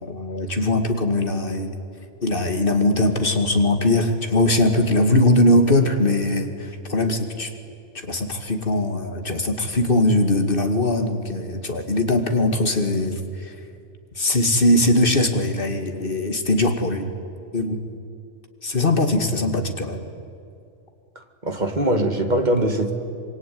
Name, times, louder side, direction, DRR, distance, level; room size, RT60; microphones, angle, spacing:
voice 1, 0.0-1.7 2.2-7.5 7.9-13.5 14.2-17.1 17.5-17.8 18.6-20.0, left 1 dB, 45° left, 6 dB, 2.5 m, -21 dB
voice 2, 21.4-22.9, right 1 dB, 35° right, 6 dB, 2.3 m, -21 dB
26.0 x 23.5 x 9.4 m, 2.5 s
omnidirectional pair, 1.3 m